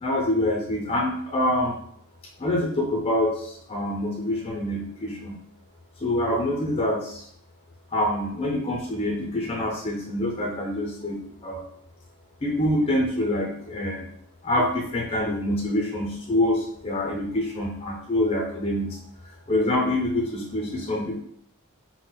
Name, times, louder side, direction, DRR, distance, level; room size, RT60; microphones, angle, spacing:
voice 1, 0.0-1.8 2.4-5.3 6.0-7.2 7.9-11.6 12.4-14.1 14.4-19.0 19.5-21.2, left 1 dB, 25° left, -1 dB, 0.5 m, -26 dB
2.4 x 2.1 x 3.8 m, 0.67 s
head